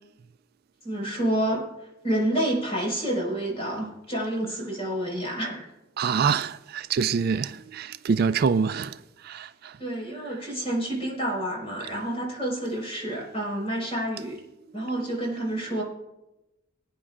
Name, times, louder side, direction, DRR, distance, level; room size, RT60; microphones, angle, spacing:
voice 1, 0.8-1.6 2.0-5.7 9.8-14.4 14.7-15.8, right 1 dB, 30° left, 4.8 m, -29 dB
voice 2, 6.0-9.8 14.8-14.9, right 6 dB, 50° right, 0.3 m, -26 dB
24.5 x 9.6 x 2.5 m
head